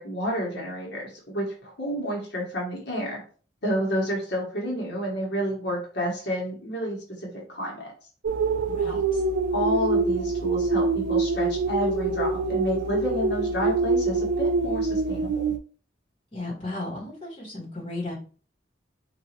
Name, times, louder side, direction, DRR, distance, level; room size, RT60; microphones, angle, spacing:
voice 1, 0.0-3.2 3.6-7.9 8.8-9.0 9.5-15.5, equal, 65° left, -3 dB, 1.2 m, -30 dB
sound 1, 8.2-15.6, right 3 dB, 80° right, 0.4 m, -25 dB
voice 2, 8.6-9.2 16.3-18.1, left 2 dB, 30° left, -4 dB, 1.5 m, -35 dB
3.8 x 2.6 x 2.9 m, 0.40 s
head